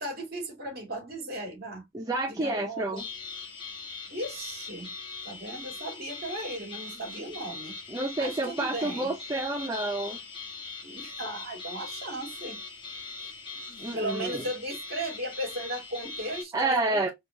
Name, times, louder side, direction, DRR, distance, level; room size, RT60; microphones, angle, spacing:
voice 1, 0.0-1.9 2.2-3.1 4.1-4.9 5.2-7.8 8.2-9.1 10.8-12.6 13.2-13.3 13.9-17.1, right 1 dB, 45° right, 2.1 m, -36 dB
voice 2, 1.9-3.0 7.9-10.2 13.8-14.4 16.5-17.1, right 2 dB, 15° right, 0.5 m, -29 dB
sound 1, 3.0-16.4, left 3 dB, 25° left, 1.3 m, -41 dB
4.3 x 3.0 x 3.0 m
head